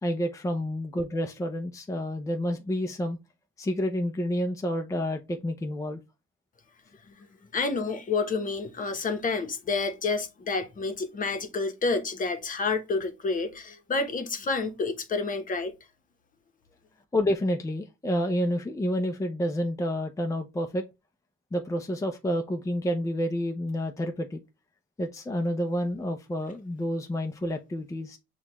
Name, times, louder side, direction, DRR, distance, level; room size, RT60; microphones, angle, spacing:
voice 1, 0.0-3.2 3.6-6.0 17.1-20.8 21.5-24.4 25.0-28.2, equal, 15° left, 0.6 m, -29 dB
voice 2, 7.5-15.7, left 4 dB, 40° left, 1.0 m, -29 dB
6.4 x 2.4 x 3.0 m
cardioid pair, 90°, 20 cm